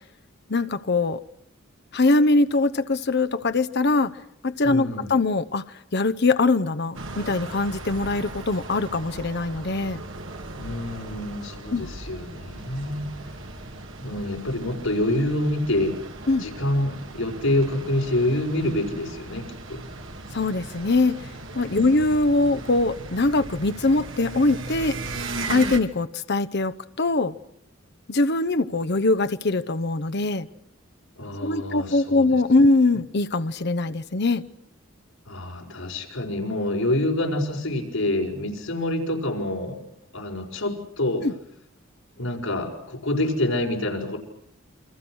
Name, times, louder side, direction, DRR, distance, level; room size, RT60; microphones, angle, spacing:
voice 1, 0.5-1.2 1.9-4.1 4.4-5.6 5.9-10.0 11.7-11.9 16.3-16.4 20.3-21.2 21.5-25.0 25.5-27.3 28.1-30.5 31.4-34.4 41.2-41.3, left 2 dB, 55° left, 10 dB, 0.9 m, -22 dB
voice 2, 4.6-5.2 10.5-13.1 14.0-16.0 16.4-19.8 21.7-22.1 31.2-32.4 35.3-39.8 40.1-41.3 42.2-44.2, left 1 dB, 80° left, 1 dB, 5.6 m, -27 dB
sound 1, 6.9-25.8, right 2 dB, 65° right, 2.7 m, -37 dB
28.5 x 25.0 x 6.3 m, 0.70 s
head